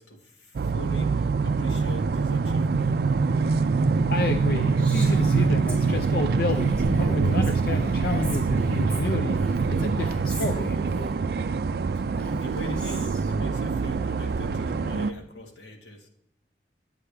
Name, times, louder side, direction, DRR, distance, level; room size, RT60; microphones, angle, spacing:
voice 1, 0.0-2.9 12.4-16.1, equal, 85° left, 2 dB, 1.5 m, -42 dB
sound 1, 0.5-15.1, right 4 dB, 60° right, 0.3 m, -24 dB
voice 2, 4.1-10.8, left 3 dB, 55° left, 7 dB, 0.5 m, -30 dB
Female speech woman speaking, 4.8-11.1 12.0-13.3, equal, 5° left, 3.4 m, -38 dB
9.8 x 8.2 x 3.4 m, 0.77 s
head